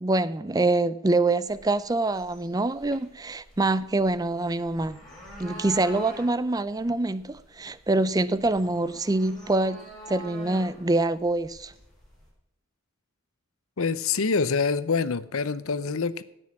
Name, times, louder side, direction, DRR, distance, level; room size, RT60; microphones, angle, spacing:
voice 1, 0.0-5.0 5.4-9.8 10.1-11.7, right 2 dB, 20° right, 0.4 m, -25 dB
sound 1, 1.5-12.3, equal, ahead, 4.6 m, -46 dB
voice 2, 13.8-16.2, left 5 dB, 75° left, 0.7 m, -26 dB
17.0 x 6.3 x 6.0 m
head